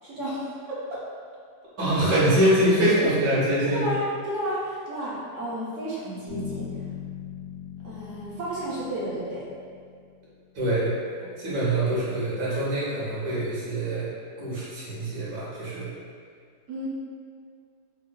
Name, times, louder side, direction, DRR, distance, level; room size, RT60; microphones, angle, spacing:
voice 1, 0.0-1.0 3.6-6.7 7.8-9.4 16.7-16.9, equal, 60° right, -8 dB, 0.9 m, -32 dB
voice 2, 1.8-3.9 10.5-10.9 11.4-14.1 14.4-15.9, right 1 dB, 90° right, -9 dB, 1.7 m, -24 dB
Bass guitar, 6.3-10.2, left 8 dB, 25° left, 1.1 m, -39 dB
3.7 x 2.7 x 2.2 m, 2.1 s
omnidirectional pair, 1.8 m